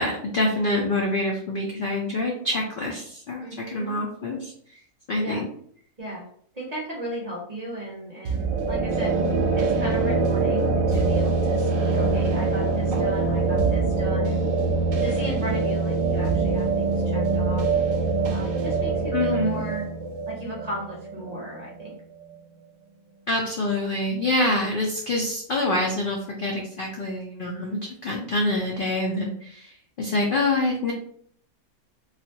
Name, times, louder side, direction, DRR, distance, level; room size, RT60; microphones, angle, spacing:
voice 1, 0.0-4.5 5.1-5.5 19.1-19.6 23.3-30.9, left 2 dB, 70° left, -1 dB, 0.5 m, -26 dB
voice 2, 3.4-4.0 5.2-5.4 6.0-6.2 6.5-9.1 9.5-14.4 15.0-17.7 18.3-19.9 20.3-22.0, right 1 dB, 40° right, -4 dB, 0.6 m, -35 dB
sound 1, 8.2-21.9, right 3 dB, 70° right, 0.9 m, -24 dB
3.2 x 2.4 x 2.7 m, 0.62 s
omnidirectional pair, 1.5 m